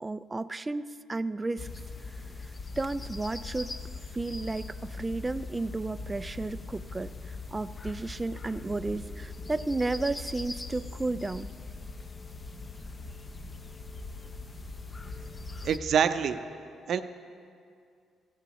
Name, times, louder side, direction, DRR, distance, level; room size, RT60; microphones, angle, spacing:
voice 1, 0.0-1.7 2.0-2.1 2.4-3.7 4.1-11.5, right 2 dB, 20° right, 12 dB, 0.3 m, -33 dB
sound 1, 1.6-15.8, left 3 dB, 30° left, 0.8 m, -41 dB
voice 2, 15.6-16.4 16.9-17.0, right 7 dB, 65° right, 10 dB, 0.6 m, -25 dB
17.0 x 16.0 x 3.1 m, 2.3 s
cardioid pair, 90°, 0 cm